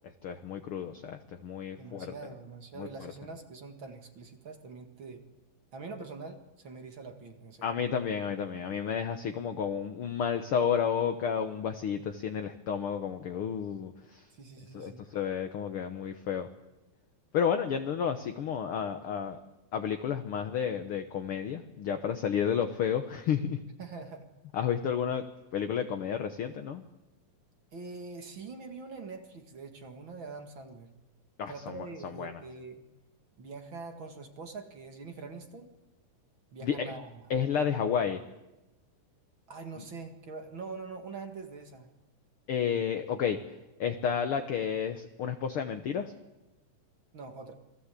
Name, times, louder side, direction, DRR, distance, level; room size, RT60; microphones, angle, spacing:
voice 1, 0.2-2.1 2.8-2.9 7.6-14.2 14.7-16.5 17.3-19.4 19.7-23.6 24.5-25.2 25.5-26.8 31.4-32.4 36.6-36.9 37.3-38.2 42.5-43.4 43.8-46.1, left 7 dB, 65° left, 7 dB, 1.4 m, -31 dB
voice 2, 1.7-5.2 5.7-7.7 14.3-15.0 23.8-24.3 27.7-30.9 31.5-32.8 33.4-35.7 36.5-37.2 37.6-38.0 39.5-41.9 47.1-47.5, right 4 dB, 40° right, 6 dB, 2.2 m, -44 dB
28.0 x 20.0 x 8.4 m, 1.0 s
omnidirectional pair, 3.9 m